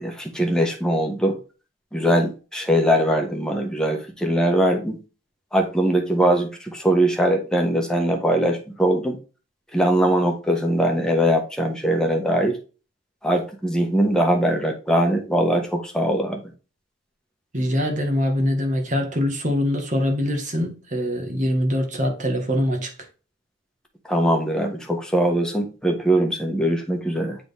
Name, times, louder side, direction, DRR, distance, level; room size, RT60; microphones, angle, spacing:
voice 1, 0.0-1.3 1.9-5.0 5.5-9.2 9.7-12.6 13.2-16.5 24.1-27.4, right 1 dB, 5° left, 1.4 m, -21 dB
voice 2, 17.5-22.9, equal, 45° right, 1.7 m, -23 dB
8.0 x 4.1 x 3.5 m
head